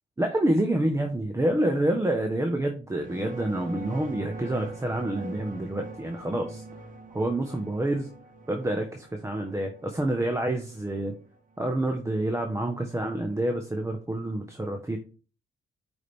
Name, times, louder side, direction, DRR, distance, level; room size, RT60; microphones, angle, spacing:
voice 1, 0.2-6.6 7.1-8.1 8.5-11.1 11.6-15.0, right 1 dB, 15° right, 4 dB, 1.2 m, -28 dB
sound 1, 2.9-11.6, right 2 dB, 40° right, 1.5 m, -42 dB
8.4 x 5.0 x 3.6 m, 0.37 s
cardioid pair, 90°, 20 cm